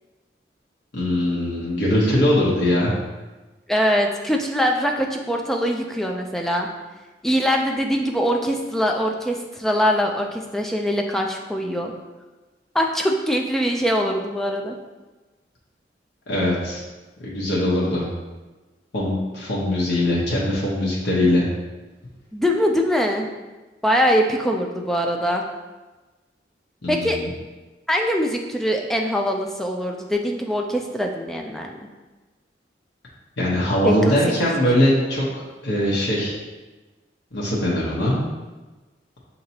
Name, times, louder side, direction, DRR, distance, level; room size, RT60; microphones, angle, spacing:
voice 1, 0.9-2.9 16.3-16.8 17.2-18.1 18.9-21.5 26.8-27.3 33.4-35.2 35.6-36.3 37.3-38.2, left 1 dB, 85° left, -6 dB, 1.0 m, -21 dB
voice 2, 3.7-6.7 7.2-11.9 12.7-14.8 22.3-23.3 23.8-25.4 26.9-27.2 27.9-31.8 33.8-34.2, equal, ahead, 1 dB, 0.4 m, -22 dB
6.6 x 2.8 x 2.8 m, 1.2 s
head